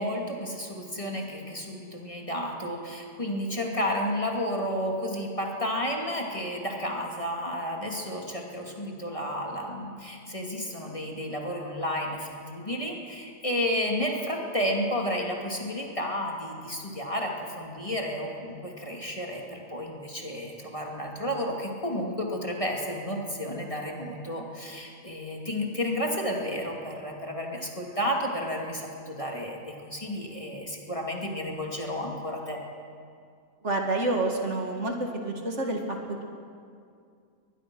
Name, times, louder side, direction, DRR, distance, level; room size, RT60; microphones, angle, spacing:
voice 1, 0.0-32.6, equal, 25° left, 0 dB, 2.4 m, -32 dB
voice 2, 33.6-36.2, right 2 dB, 55° right, 2 dB, 2.4 m, -29 dB
22.5 x 21.0 x 6.2 m, 2.3 s
omnidirectional pair, 1.5 m